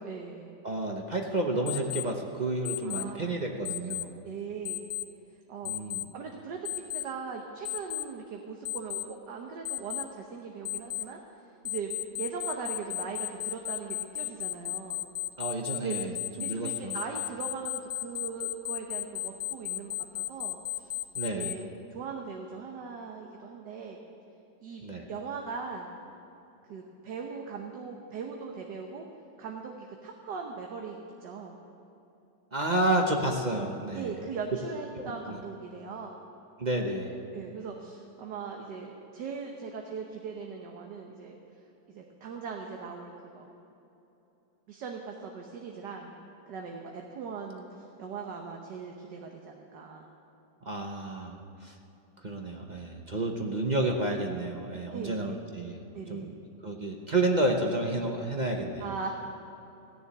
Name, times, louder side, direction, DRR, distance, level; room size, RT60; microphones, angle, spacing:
voice 1, 0.0-0.5 2.8-3.4 4.2-4.8 5.5-5.7 6.1-11.2 11.6-11.9 12.2-15.0 15.8-20.9 21.2-24.0 24.6-24.8 25.1-25.9 26.7-29.1 29.4-31.5 33.9-36.2 37.3-41.4 41.9-43.5 44.7-46.1 46.4-50.1 53.1-53.2 54.9-55.4 55.9-56.3 58.8-59.1, right 5 dB, 70° right, 2 dB, 1.6 m, -40 dB
voice 2, 0.6-4.1 5.6-6.1 15.4-16.9 21.1-21.5 24.8-25.0 32.5-34.1 34.9-35.4 36.6-37.2 50.6-51.7 52.2-55.8 56.1-56.3 56.6-58.9, right 2 dB, 35° right, 2 dB, 0.7 m, -30 dB
Alarm, 1.7-2.0 2.6-3.0 3.6-4.0 4.6-5.0 5.6-6.0 6.6-7.0 7.6-8.0 8.6-9.0 9.6-10.0 10.6-11.0 11.6-21.5, left 16 dB, 70° left, 0.8 m, -33 dB
16.0 x 7.0 x 9.7 m, 3.0 s
omnidirectional pair, 2.0 m